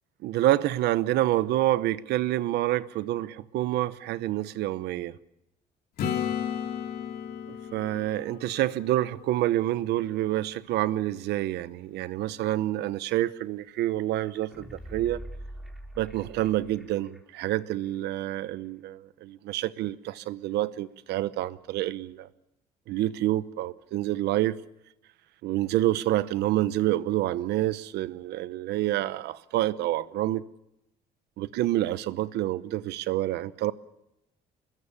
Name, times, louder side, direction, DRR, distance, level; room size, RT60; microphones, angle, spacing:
voice 1, 0.2-5.2 7.7-15.2 16.0-22.3 22.9-24.6 25.4-30.5 31.4-33.7, right 14 dB, 80° right, 1.0 m, -28 dB
Acoustic guitar / Strum, 6.0-9.7 14.6-14.7, left 8 dB, 65° left, 2.8 m, -34 dB
sound 1, 14.3-17.2 17.5-17.6, right 1 dB, ahead, 3.9 m, -43 dB
25.5 x 21.0 x 7.3 m
cardioid pair, 110°, 17 cm